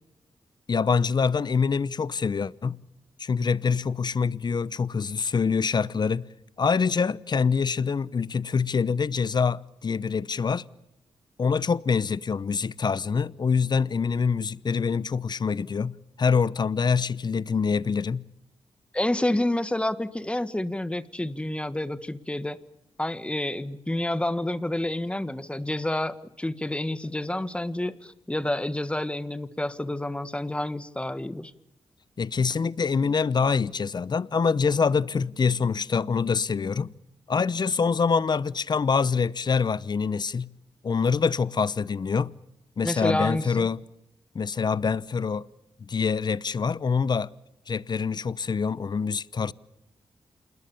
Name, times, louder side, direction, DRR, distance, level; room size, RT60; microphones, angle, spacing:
voice 1, 0.7-2.8 3.2-6.3 6.6-10.6 11.4-18.3 32.2-36.9 37.3-40.5 40.8-42.3 42.8-43.8 44.3-45.5 45.9-47.3 47.7-49.5, left 5 dB, 45° left, 0.8 m, -25 dB
voice 2, 18.9-22.6 23.0-31.5 42.8-43.7, left 1 dB, 10° left, 1.5 m, -29 dB
28.0 x 20.5 x 7.1 m
cardioid pair, 80°, 10 cm